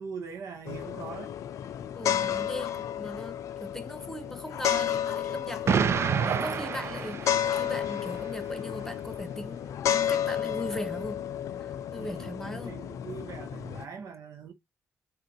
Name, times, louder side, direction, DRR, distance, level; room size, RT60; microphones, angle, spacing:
voice 1, 0.0-1.4 12.0-14.5, right 6 dB, 75° right, 0.7 m, -42 dB
sound 1, 0.7-13.9, left 10 dB, 75° left, 0.4 m, -32 dB
voice 2, 1.9-11.2 11.6-12.8, left 1 dB, 5° left, 1.0 m, -39 dB
Explosion, 5.7-7.8, right 7 dB, 55° right, 0.4 m, -28 dB
3.7 x 2.4 x 2.6 m
supercardioid pair, 55°, 5 cm